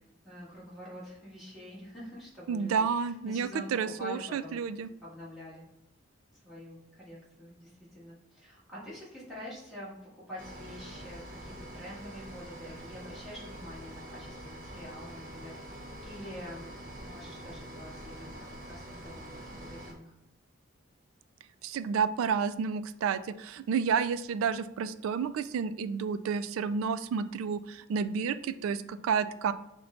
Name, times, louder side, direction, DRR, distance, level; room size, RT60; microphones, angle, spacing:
voice 1, 0.2-4.6 5.0-5.7 6.3-15.6 16.0-16.7 17.0-20.1, equal, ahead, -10 dB, 1.6 m, -46 dB
voice 2, 2.5-4.9 21.6-29.5, right 6 dB, 90° right, 12 dB, 0.3 m, -30 dB
sound 1, 10.4-19.9, right 1 dB, 40° right, 1.0 m, -45 dB
5.7 x 2.2 x 3.8 m, 0.90 s
head